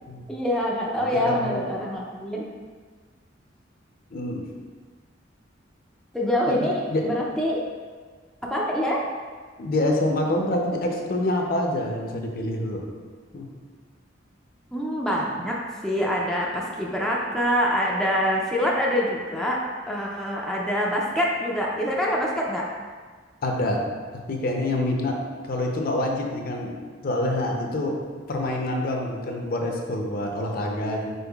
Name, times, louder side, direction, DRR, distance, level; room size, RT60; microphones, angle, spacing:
voice 1, 0.3-2.4 6.1-7.6 8.5-9.0 14.7-15.6 15.8-19.6 19.9-22.6, equal, 5° left, -4 dB, 0.4 m, -25 dB
voice 2, 1.2-1.7 4.1-4.4 6.5-7.1 9.6-12.9 13.3-13.5 23.4-23.8 24.3-25.2 25.4-28.0 28.3-31.1, left 1 dB, 50° left, 1 dB, 0.5 m, -26 dB
5.4 x 3.9 x 2.3 m, 1.5 s
head